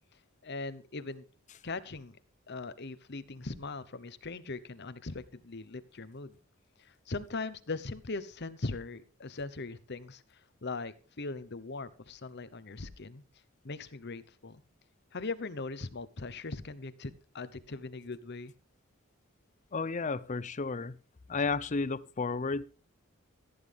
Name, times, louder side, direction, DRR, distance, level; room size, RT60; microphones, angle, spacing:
voice 1, 0.4-1.3 1.6-2.2 2.5-6.4 6.8-13.2 13.6-14.6 15.1-18.5, left 3 dB, 55° left, 14 dB, 1.0 m, -40 dB
voice 2, 19.7-21.0 21.3-22.7, left 4 dB, 35° left, 18 dB, 0.6 m, -32 dB
15.0 x 9.8 x 3.5 m, 0.39 s
head